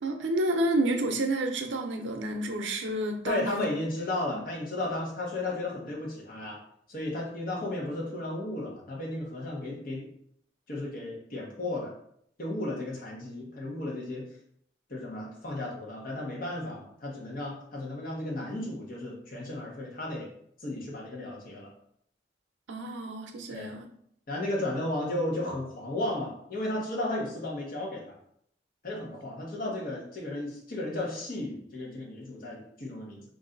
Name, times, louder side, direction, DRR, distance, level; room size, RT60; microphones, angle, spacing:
voice 1, 0.0-3.7 4.3-4.4 22.7-23.9, right 1 dB, 85° right, 4 dB, 0.6 m, -30 dB
voice 2, 3.2-6.6 6.9-10.1 10.7-11.9 12.4-14.3 14.9-20.3 20.6-21.7 23.5-23.7 24.3-28.2 28.8-33.2, left 1 dB, 50° left, -2 dB, 1.0 m, -34 dB
3.1 x 2.6 x 3.8 m, 0.68 s
head